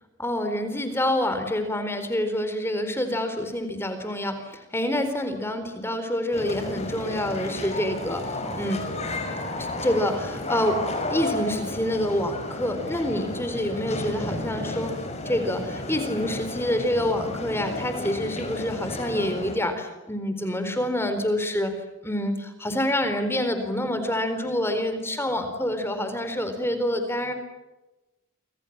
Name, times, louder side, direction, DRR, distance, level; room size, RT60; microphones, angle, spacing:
voice 1, 0.2-8.8 9.6-10.8 11.1-15.0 15.2-21.7 22.0-27.3, left 1 dB, 10° left, 8 dB, 4.2 m, -27 dB
sound 1, 6.3-19.5, left 1 dB, 30° left, 5.8 m, -32 dB
29.5 x 26.0 x 7.4 m, 1.0 s
head